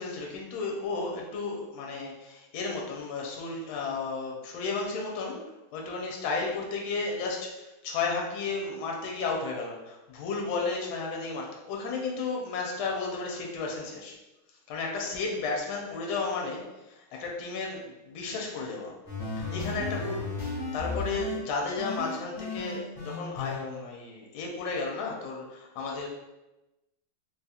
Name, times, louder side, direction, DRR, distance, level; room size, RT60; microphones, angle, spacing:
voice 1, 0.0-5.4 5.7-14.1 14.7-19.0 19.5-26.1, left 4 dB, 80° left, 0 dB, 1.4 m, -33 dB
sound 1, 19.1-21.4 21.8-23.6, left 3 dB, 45° left, 1.2 m, -34 dB
3.7 x 2.3 x 2.7 m, 1.0 s
omnidirectional pair, 2.3 m